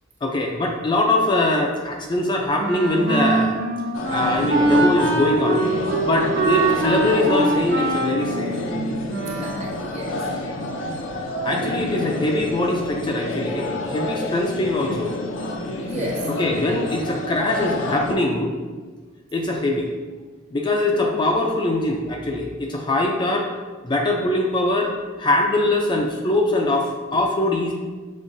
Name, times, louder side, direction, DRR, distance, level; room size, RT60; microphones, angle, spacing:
voice 1, 0.2-3.6 4.1-5.6 6.0-8.6 11.4-15.2 16.4-18.5 19.3-19.9 20.5-23.5 23.8-24.9 25.2-27.7, left 2 dB, 25° left, 0 dB, 0.4 m, -22 dB
Wind instrument woodwind instrument, 2.6-9.7, right 2 dB, 60° right, 0.7 m, -23 dB
sound 1, 3.9-18.1, left 1 dB, 75° left, 0.5 m, -29 dB
voice 2, 9.2-10.2 11.8-12.1 15.8-16.3 20.9-21.1, equal, 35° right, -2 dB, 0.9 m, -34 dB
5.5 x 3.4 x 2.6 m, 1.4 s
head